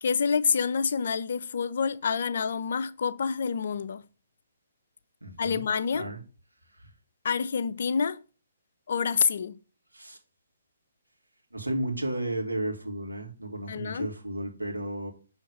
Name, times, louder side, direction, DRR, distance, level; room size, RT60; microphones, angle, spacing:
voice 1, 0.0-4.0 5.4-6.1 7.2-8.2 8.9-9.6 13.7-14.1, left 6 dB, 55° left, 0.4 m, -27 dB
voice 2, 5.2-5.6 5.9-6.2 6.8-6.9 9.9-10.2 11.5-15.1, right 1 dB, 85° right, 1.8 m, -33 dB
6.3 x 3.2 x 5.3 m
figure-of-eight pair, 130°, 0 cm